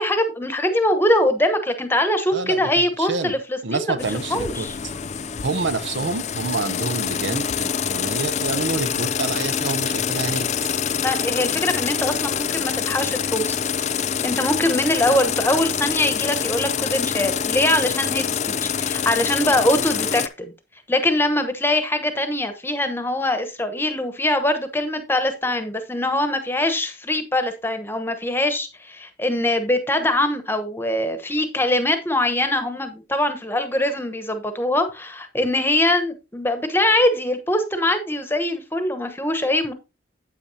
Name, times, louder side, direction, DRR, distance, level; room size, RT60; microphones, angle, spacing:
voice 1, 0.0-4.0 4.3-4.7 11.0-13.5 14.2-20.5 20.9-39.7, left 1 dB, 10° left, 1.0 m, -22 dB
voice 2, 2.3-4.7 5.4-10.5, right 3 dB, 80° right, 0.7 m, -28 dB
sound 1, 4.0-20.3, left 7 dB, 40° left, 0.4 m, -25 dB
8.5 x 8.4 x 2.8 m
head